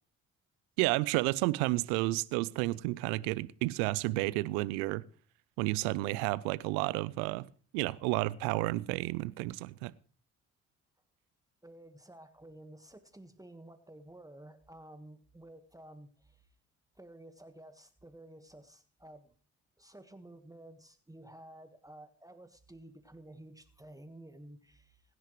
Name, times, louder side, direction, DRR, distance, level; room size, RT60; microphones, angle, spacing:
voice 1, 0.8-5.0 5.6-7.5 7.7-9.9, right 20 dB, 80° right, 0.6 m, -31 dB
voice 2, 11.6-16.5 16.9-19.3 19.8-25.1, right 1 dB, 10° right, 1.4 m, -52 dB
22.0 x 10.0 x 3.1 m
hypercardioid pair, 45°, 35 cm